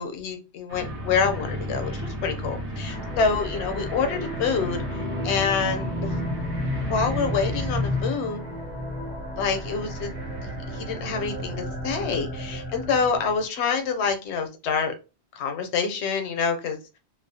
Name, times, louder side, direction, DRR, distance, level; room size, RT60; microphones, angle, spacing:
voice 1, 0.0-4.8 5.2-6.1 6.9-8.4 9.4-10.1 10.7-14.9 15.3-16.8, left 5 dB, 85° left, 6 dB, 0.9 m, -26 dB
sound 1, 0.7-8.0, left 1 dB, 90° right, 1.0 m, -33 dB
sound 2, 2.8-13.5, equal, 50° right, 0.9 m, -32 dB
2.4 x 2.0 x 2.6 m, 0.30 s
omnidirectional pair, 1.1 m